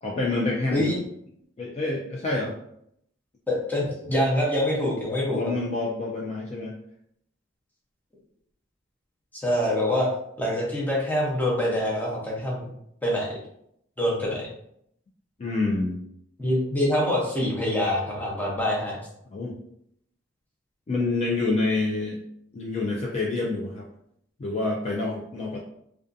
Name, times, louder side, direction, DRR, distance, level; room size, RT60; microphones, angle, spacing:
voice 1, 0.0-0.9 1.6-2.5 5.3-6.7 15.4-16.0 19.3-19.5 20.9-22.2 22.5-23.9 24.4-25.6, left 2 dB, 35° left, -3 dB, 0.3 m, -27 dB
voice 2, 3.5-5.5 9.4-10.1 10.4-12.7 13.0-13.4 14.0-14.5 16.4-19.0, left 1 dB, 10° left, -4 dB, 0.7 m, -25 dB
2.4 x 2.3 x 2.5 m, 0.74 s
head